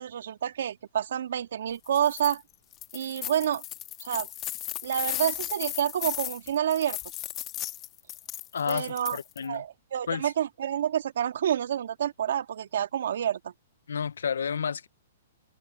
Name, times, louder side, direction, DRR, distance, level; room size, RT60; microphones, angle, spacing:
voice 1, 0.0-2.4 2.9-3.6 4.0-4.3 4.8-7.0 8.7-9.2 9.4-13.5, right 10 dB, 70° right, 2.0 m, -28 dB
sound 1, 1.8-2.4 2.7-9.4, left 14 dB, 25° left, 1.9 m, -36 dB
voice 2, 8.5-9.6 10.1-10.3 13.9-14.9, left 7 dB, 85° left, 0.9 m, -31 dB
hypercardioid pair, 140°, 0 cm